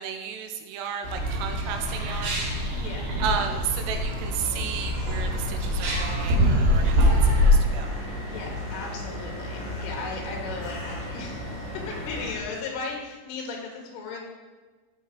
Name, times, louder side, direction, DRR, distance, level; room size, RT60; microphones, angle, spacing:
voice 1, 0.0-2.5 3.2-8.0, right 7 dB, 85° right, 5 dB, 3.5 m, -33 dB
sound 1, 1.0-7.5, equal, 65° right, 4.9 m, -24 dB
voice 2, 2.8-3.1 8.3-14.2, left 4 dB, 75° left, 0 dB, 4.2 m, -36 dB
sound 2, 5.0-12.4, left 3 dB, 50° left, 2.6 m, -38 dB
sound 3, 7.2-12.3, right 2 dB, 50° right, 3.6 m, -39 dB
14.0 x 6.2 x 5.1 m, 1.3 s
omnidirectional pair, 5.8 m